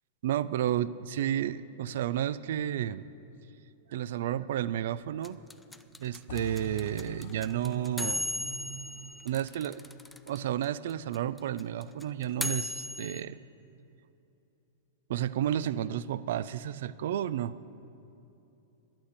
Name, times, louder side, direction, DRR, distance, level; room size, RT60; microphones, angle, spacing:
voice 1, 0.2-3.1 3.9-5.4 6.0-9.8 10.3-13.4 15.1-17.5, right 11 dB, 65° right, 17 dB, 0.4 m, -32 dB
sound 1, 5.2-10.4 10.6-10.7 10.9-13.2, left 2 dB, 5° left, 0.5 m, -36 dB
sound 2, 6.3-10.4, left 10 dB, 60° left, 0.4 m, -48 dB
11.5 x 8.9 x 8.3 m, 2.9 s
hypercardioid pair, 105°, 0 cm